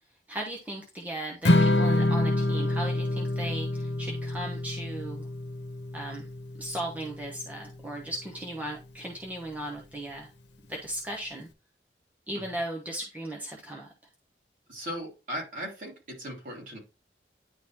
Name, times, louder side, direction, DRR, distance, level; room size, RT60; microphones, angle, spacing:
voice 1, 0.3-5.3 5.9-6.3 6.6-10.3 10.7-11.5 12.3-13.9, right 1 dB, 10° right, -1 dB, 1.0 m, -37 dB
Strum, 1.5-7.7, left 2 dB, 80° left, 1.0 m, -27 dB
voice 2, 14.7-16.8, equal, 50° right, -3 dB, 3.4 m, -38 dB
10.0 x 3.9 x 3.0 m, 0.27 s
head